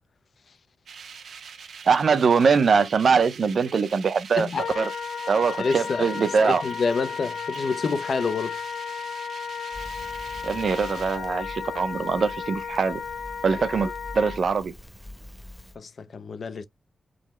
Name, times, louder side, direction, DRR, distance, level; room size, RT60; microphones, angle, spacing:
sound 1, 0.9-11.2, right 6 dB, 85° right, 0.9 m, -44 dB
voice 1, 1.9-4.5 4.8-4.9 5.3-6.6 10.4-13.0 13.4-14.7, right 5 dB, 55° right, 0.6 m, -22 dB
Wind instrument woodwind instrument, 4.5-14.4, left 6 dB, 85° left, 0.9 m, -34 dB
voice 2, 5.6-8.6 15.8-16.6, left 4 dB, 50° left, 0.6 m, -28 dB
Crackle, 9.7-15.8, left 1 dB, 5° left, 0.9 m, -44 dB
4.1 x 3.9 x 3.1 m
wide cardioid pair, 175°, 0 cm